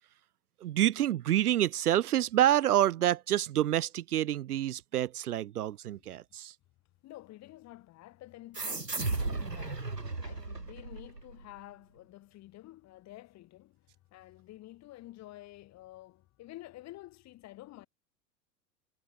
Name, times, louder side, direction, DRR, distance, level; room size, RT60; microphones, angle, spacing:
voice 1, 0.6-6.5, right 12 dB, 70° right, 0.6 m, -27 dB
voice 2, 7.0-17.9, left 16 dB, 35° left, 5.4 m, -50 dB
sound 1, 8.5-11.6, right 3 dB, 90° right, 2.2 m, -35 dB
figure-of-eight pair, 90°, 47 cm